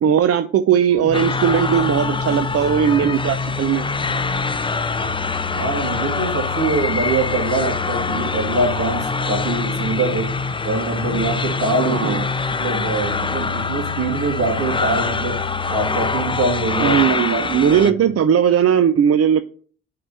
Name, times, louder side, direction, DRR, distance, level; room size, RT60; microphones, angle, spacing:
voice 1, 0.0-3.9 11.9-12.3 16.8-19.4, right 8 dB, 45° right, 11 dB, 0.5 m, -18 dB
sound 1, 0.9-6.7, right 2 dB, 20° right, 1.8 m, -42 dB
sound 2, 1.0-17.0, left 6 dB, 50° left, 0.9 m, -30 dB
sound 3, 1.1-17.9, left 4 dB, 15° left, 0.5 m, -25 dB
voice 2, 5.5-10.3 10.6-12.2 12.6-15.4 15.7-17.9, right 3 dB, 65° right, 2 dB, 2.2 m, -23 dB
6.6 x 3.8 x 5.5 m, 0.43 s
supercardioid pair, 50°, 33 cm